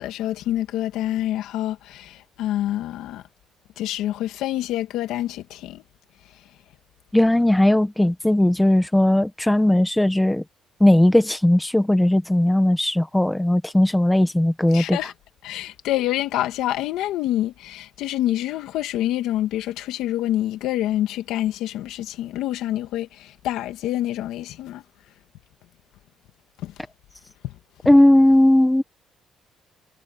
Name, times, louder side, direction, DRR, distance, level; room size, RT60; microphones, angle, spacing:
voice 1, 0.0-3.2 3.8-5.8 14.7-15.1 15.4-24.8 26.6-26.7 27.4-27.5, left 13 dB, 90° left, 2.0 m, -27 dB
voice 2, 7.1-10.4 10.8-15.0 27.8-28.8, left 1 dB, 5° left, 1.1 m, -17 dB
cardioid pair, 175°, 0 cm